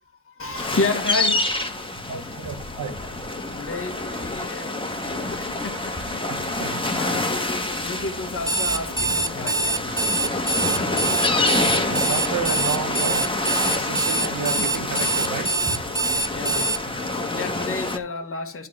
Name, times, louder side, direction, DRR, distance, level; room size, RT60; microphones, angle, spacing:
voice 1, 0.3-2.5 3.6-10.1 10.4-10.6 14.2-14.4 16.3-16.7 17.0-18.7, left 3 dB, 30° left, 1.3 m, -32 dB
sound 1, 0.5-18.0, left 2 dB, 10° left, 1.4 m, -27 dB
voice 2, 2.1-2.9 6.3-7.0 11.9-13.4 13.7-15.6, right 6 dB, 45° right, 1.1 m, -31 dB
sound 2, 5.0-14.7, right 3 dB, 85° right, 1.8 m, -44 dB
Alarm, 8.4-16.8, right 3 dB, 10° right, 0.5 m, -24 dB
10.5 x 4.0 x 6.1 m
cardioid pair, 65°, 42 cm